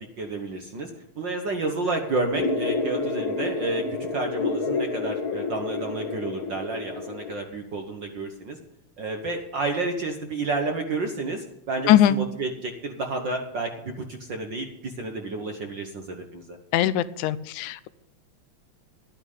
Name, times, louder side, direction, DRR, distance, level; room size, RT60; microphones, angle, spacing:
voice 1, 0.2-0.9 1.2-8.6 9.0-16.6, right 3 dB, 55° right, 4 dB, 1.3 m, -30 dB
sound 1, 2.3-7.3, left 3 dB, 45° left, 1.2 m, -29 dB
voice 2, 16.7-17.9, left 12 dB, 85° left, 14 dB, 2.1 m, -20 dB
12.5 x 9.9 x 5.5 m, 0.81 s
omnidirectional pair, 3.4 m